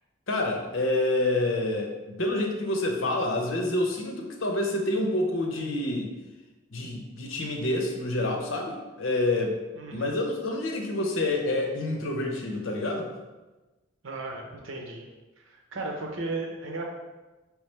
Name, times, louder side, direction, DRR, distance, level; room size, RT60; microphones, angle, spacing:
voice 1, 0.3-6.1 6.7-9.6 9.9-13.1, left 2 dB, 85° left, 2 dB, 0.8 m, -28 dB
voice 2, 9.8-10.1 14.0-15.1 15.4-16.8, right 2 dB, 80° right, 1 dB, 0.8 m, -35 dB
4.8 x 3.4 x 3.3 m, 1.1 s
head